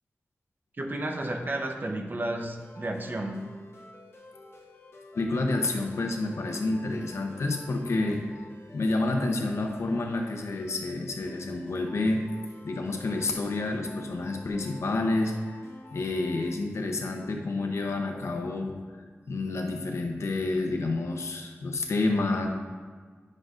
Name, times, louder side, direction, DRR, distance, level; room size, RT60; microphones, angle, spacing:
voice 1, 0.8-3.4, right 1 dB, 45° right, 3 dB, 0.8 m, -32 dB
sound 1, 2.6-16.5, left 2 dB, 65° left, 1.3 m, -49 dB
voice 2, 5.1-8.2 8.7-12.2 12.6-15.3 15.9-22.5, left 2 dB, 85° left, 2 dB, 0.8 m, -29 dB
9.7 x 6.2 x 2.5 m, 1.5 s
wide cardioid pair, 70°, 5 cm